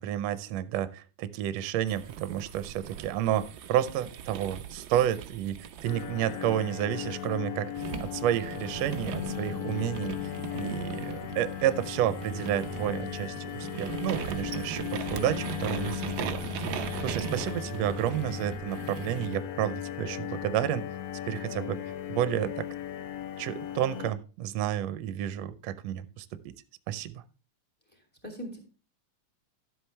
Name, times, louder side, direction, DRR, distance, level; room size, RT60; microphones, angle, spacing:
voice 1, 0.0-7.7 8.0-20.9 21.3-21.8 22.1-22.7 23.4-26.5 26.9-27.2, right 11 dB, 75° right, 14 dB, 1.7 m, -31 dB
sound 1, 1.9-7.3 7.8-19.4, right 8 dB, 90° right, 1.0 m, -40 dB
sound 2, 5.8-24.1, left 9 dB, 70° left, 1.9 m, -37 dB
voice 2, 27.9-28.6, equal, 5° left, 2 dB, 2.4 m, -41 dB
12.0 x 8.0 x 3.2 m, 0.34 s
omnidirectional pair, 3.3 m